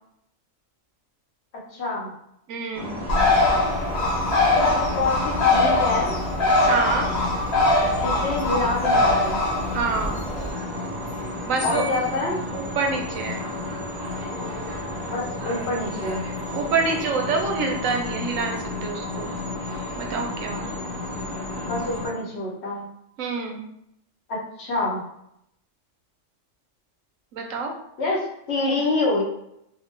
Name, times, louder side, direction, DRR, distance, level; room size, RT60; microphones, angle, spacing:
voice 1, 1.7-2.1 4.5-6.2 8.0-9.4 11.6-12.4 15.0-16.3 21.6-22.8 24.3-25.0 28.0-29.2, left 2 dB, 60° left, -2 dB, 1.0 m, -26 dB
voice 2, 2.5-3.0 6.6-7.3 9.7-10.2 11.5-11.8 12.5-13.4 16.5-19.3 20.0-20.7 23.2-23.6 27.3-27.7, right 4 dB, 85° right, 3 dB, 1.0 m, -27 dB
sound 1, 2.7-22.1, left 1 dB, 30° right, 0.5 m, -32 dB
Bird, 3.1-10.5, left 2 dB, 85° left, 1.2 m, -22 dB
2.9 x 2.1 x 3.1 m, 0.77 s
omnidirectional pair, 1.3 m